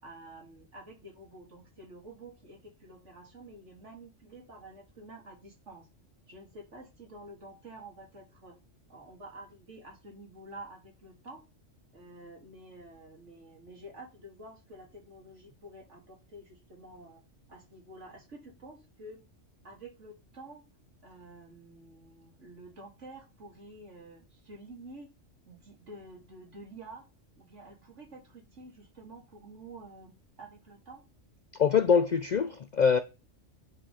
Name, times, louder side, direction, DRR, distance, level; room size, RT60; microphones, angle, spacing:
voice 1, 0.0-5.9 6.3-8.6 8.9-11.4 11.9-17.2 17.5-19.2 19.6-20.6 21.0-25.1 25.5-27.1 27.4-31.0, right 2 dB, 65° right, 3.2 m, -49 dB
voice 2, 31.6-33.0, left 6 dB, 60° left, 0.4 m, -24 dB
9.5 x 4.9 x 5.5 m
omnidirectional pair, 1.3 m